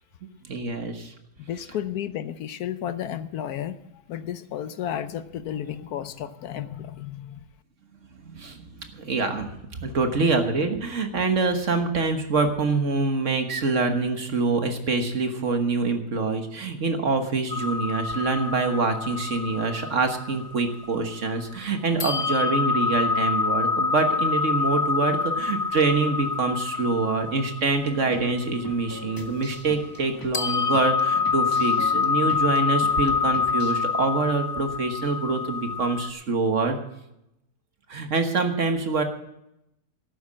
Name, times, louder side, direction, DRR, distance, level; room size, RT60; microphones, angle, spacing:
voice 1, 0.4-1.1 8.2-9.5 9.8-36.8 37.9-39.0, right 3 dB, 50° right, 6 dB, 1.6 m, -25 dB
voice 2, 1.5-7.4, left 10 dB, 70° left, 13 dB, 1.1 m, -33 dB
sound 1, 17.5-21.6 22.0-30.1 30.3-36.1, left 5 dB, 30° left, 0.7 m, -27 dB
sound 2, 27.8-33.7, left 1 dB, 15° left, 1.3 m, -42 dB
12.0 x 9.3 x 7.4 m, 0.84 s
omnidirectional pair, 1.7 m